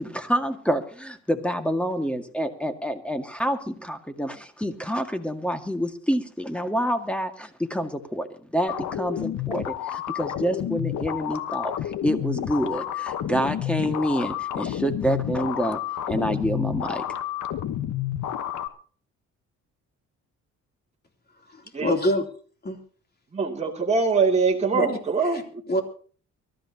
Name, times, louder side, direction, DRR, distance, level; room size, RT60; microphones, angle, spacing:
voice 1, 0.0-15.8 16.1-17.2, equal, 5° left, 1.9 m, -27 dB
sound 1, 8.7-18.7, left 11 dB, 75° left, 1.2 m, -30 dB
voice 2, 21.5-22.2 22.6-22.8 24.7-24.9 25.7-25.8, equal, 30° left, 3.3 m, -24 dB
voice 3, 23.3-25.6, right 4 dB, 20° right, 2.5 m, -23 dB
24.0 x 13.5 x 2.9 m
cardioid pair, 90°, 30 cm